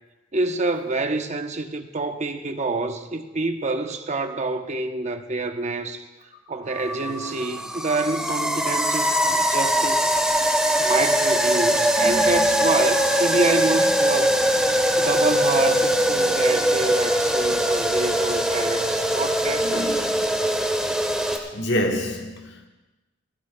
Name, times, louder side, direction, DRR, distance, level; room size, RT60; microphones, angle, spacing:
voice 1, 0.3-6.1 6.5-10.1 10.8-14.4 15.0-19.9, right 3 dB, 40° right, 0.8 m, -27 dB
sound 1, 6.7-21.4, equal, 5° right, 1.2 m, -22 dB
sound 2, 8.2-20.0, left 2 dB, 40° left, 2.3 m, -43 dB
voice 2, 12.0-12.5 19.6-20.3 21.5-22.7, left 1 dB, 65° left, 1.4 m, -28 dB
27.0 x 12.0 x 2.2 m
head